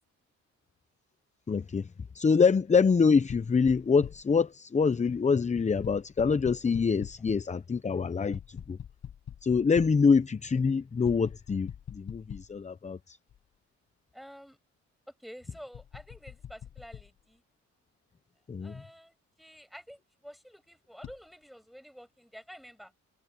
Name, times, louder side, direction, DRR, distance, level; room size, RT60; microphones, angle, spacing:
voice 1, 1.5-1.9 2.1-8.8 9.4-13.2 18.5-18.8, left 5 dB, 25° left, 0.8 m, -25 dB
sound 1, 3.3-4.4 5.8-7.5 8.3-10.0 11.0-12.7 13.3-13.4 15.7-17.1 21.0-21.2, left 9 dB, 60° left, 7.4 m, -44 dB
voice 2, 14.1-14.6 15.2-17.4 18.6-22.9, equal, ahead, 7.8 m, -49 dB
cardioid pair, 90°, 30 cm